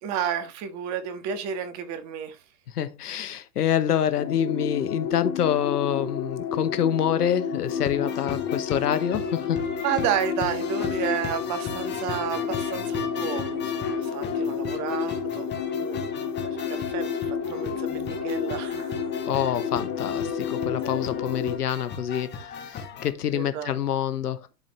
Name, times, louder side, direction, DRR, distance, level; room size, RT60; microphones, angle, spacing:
voice 1, 0.0-2.4 9.8-15.5 15.8-16.1 16.4-19.1 20.9-21.1 23.3-23.7, right 9 dB, 35° right, 1.6 m, -31 dB
voice 2, 2.7-9.6 19.3-24.5, left 9 dB, 85° left, 1.0 m, -26 dB
sound 1, 4.2-21.6, left 6 dB, 40° left, 1.9 m, -30 dB
sound 2, 7.7-23.1, left 6 dB, 25° left, 1.6 m, -38 dB
11.5 x 4.1 x 3.2 m
hypercardioid pair, 120°, 45 cm